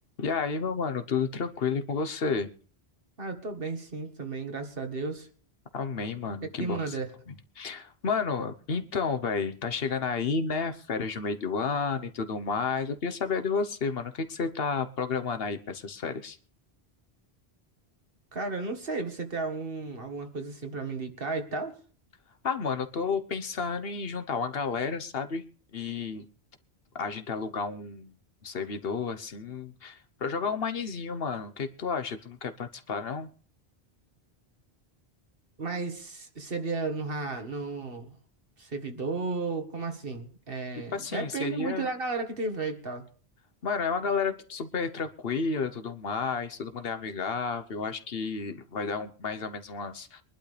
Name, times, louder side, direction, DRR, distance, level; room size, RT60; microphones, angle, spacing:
voice 1, 0.2-2.5 5.7-7.0 7.3-16.4 22.4-25.4 25.7-26.3 27.0-28.2 28.4-33.3 40.9-41.9 43.6-50.2, left 5 dB, 65° left, 9 dB, 1.2 m, -31 dB
voice 2, 3.2-5.3 6.6-7.1 18.3-21.8 35.6-38.1 38.6-43.0, right 3 dB, 60° right, 6 dB, 1.9 m, -33 dB
23.5 x 11.5 x 3.3 m, 0.42 s
omnidirectional pair, 1.1 m